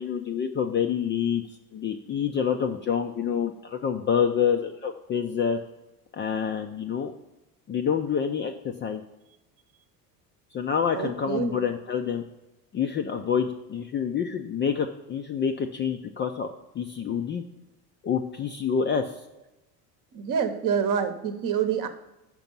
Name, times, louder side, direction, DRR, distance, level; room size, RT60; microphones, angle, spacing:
voice 1, 0.0-1.4 1.7-5.6 6.1-7.1 7.7-9.0 10.5-12.2 12.7-16.5 16.7-17.4 18.0-19.1, left 7 dB, 25° left, 5 dB, 0.4 m, -27 dB
voice 2, 10.9-11.6 20.1-21.9, right 7 dB, 40° right, 8 dB, 0.9 m, -27 dB
6.0 x 5.1 x 5.3 m, 0.98 s
hypercardioid pair, 75°, 48 cm